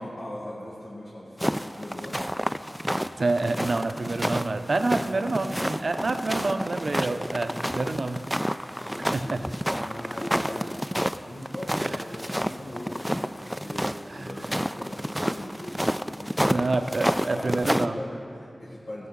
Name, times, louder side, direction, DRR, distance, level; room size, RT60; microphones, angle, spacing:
voice 1, 0.0-2.3 4.9-5.3 8.7-10.8 11.2-15.8 16.1-16.6 17.1-19.1, left 1 dB, 75° left, -7 dB, 1.9 m, -40 dB
sound 1, 1.4-17.9, equal, ahead, 0.4 m, -29 dB
voice 2, 3.2-8.2 9.0-9.4 11.8-12.0 14.1-14.3 16.5-18.0, right 3 dB, 70° right, 8 dB, 0.6 m, -28 dB
14.0 x 6.9 x 7.3 m, 2.6 s
cardioid pair, 40°, 0 cm